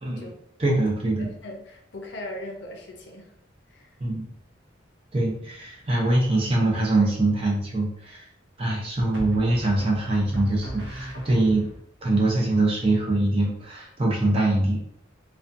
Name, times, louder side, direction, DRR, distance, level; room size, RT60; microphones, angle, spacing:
voice 1, 0.0-0.3 0.6-1.3 4.0-4.3 5.1-8.3 8.6-11.7 12.0-14.8, right 2 dB, 30° right, -2 dB, 0.6 m, -23 dB
voice 2, 1.2-3.3 3.7-3.9, left 1 dB, 65° left, 2 dB, 0.5 m, -39 dB
sound 1, 9.1-11.8, right 1 dB, 75° right, 0.6 m, -37 dB
2.5 x 2.2 x 2.5 m, 0.70 s
head